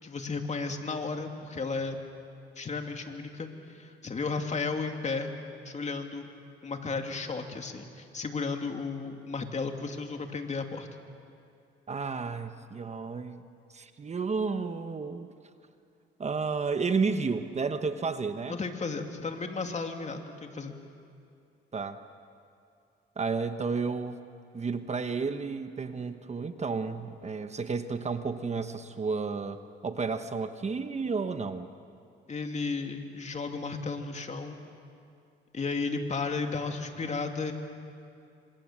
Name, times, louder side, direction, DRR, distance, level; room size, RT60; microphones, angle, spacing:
voice 1, 0.0-2.0 2.6-5.3 5.6-6.3 6.6-10.9 18.5-20.8 32.3-34.6 35.5-37.5, left 4 dB, 35° left, 4 dB, 2.6 m, -34 dB
voice 2, 11.9-13.4 13.7-15.3 16.2-18.6 21.7-22.0 23.2-24.2 24.5-31.7, right 4 dB, 35° right, 9 dB, 1.2 m, -32 dB
27.5 x 26.5 x 7.5 m, 2.5 s
cardioid pair, 90°, 20 cm